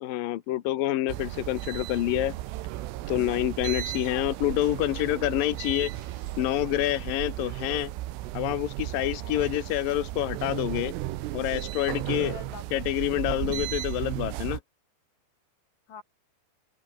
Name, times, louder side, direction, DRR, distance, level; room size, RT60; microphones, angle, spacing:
voice 1, 0.0-2.3 3.1-5.9 6.4-7.9 8.3-10.9 11.3-12.3 12.7-14.6, left 14 dB, 75° left, 2.1 m, -27 dB
sound 1, 1.1-14.6, right 16 dB, 90° right, 3.8 m, -35 dB
sound 2, 5.9-6.8 8.3-8.4, right 5 dB, 50° right, 6.8 m, -54 dB
voice 2, 9.2-9.6 12.1-12.9 15.9-16.0, left 6 dB, 45° left, 5.6 m, -44 dB
open air
omnidirectional pair, 5.6 m